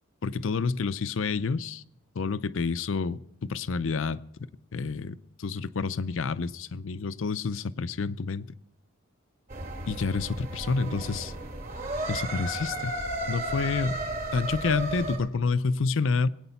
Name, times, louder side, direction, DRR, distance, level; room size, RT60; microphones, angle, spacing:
voice 1, 0.2-1.8 2.2-4.2 4.7-8.5 9.9-11.3 12.1-13.0 13.3-14.0 14.3-16.3, left 4 dB, 65° left, 0.5 m, -29 dB
sound 1, 9.5-15.2, right 1 dB, 45° right, 2.6 m, -34 dB
20.5 x 9.0 x 5.7 m
head